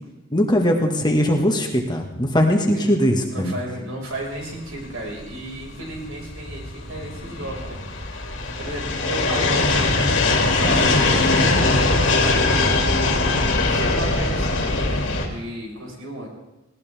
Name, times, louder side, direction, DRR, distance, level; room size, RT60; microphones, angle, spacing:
voice 1, 0.3-3.6, equal, 20° left, 2 dB, 1.8 m, -20 dB
voice 2, 3.3-7.8 8.6-9.9 10.4-11.3 13.4-16.3, right 1 dB, 80° right, -1 dB, 5.5 m, -34 dB
sound 1, 4.3-15.3, left 2 dB, 65° left, 2.6 m, -21 dB
20.0 x 17.5 x 3.6 m, 1.1 s
head